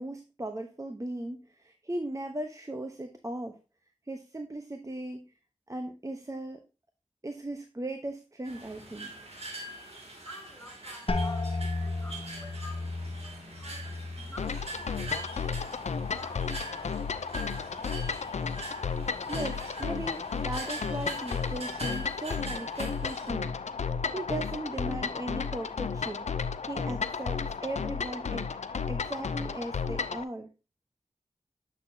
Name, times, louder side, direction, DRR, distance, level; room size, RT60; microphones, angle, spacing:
voice 1, 0.0-3.6 4.1-5.3 5.7-6.6 7.2-9.1 19.3-23.5 23.8-26.2 26.7-28.5 28.9-30.5, right 1 dB, 30° right, 1.0 m, -37 dB
sound 1, 8.4-23.3, right 2 dB, 60° right, 2.5 m, -43 dB
voice 2, 10.2-16.5 16.7-17.8, left 1 dB, 15° left, 4.6 m, -52 dB
sound 2, 11.1-16.7 17.0-17.7 18.3-18.7, left 3 dB, 55° left, 0.8 m, -36 dB
sound 3, 14.4-30.2, left 5 dB, 75° left, 0.5 m, -33 dB
8.2 x 6.4 x 2.8 m
cardioid pair, 45°, 12 cm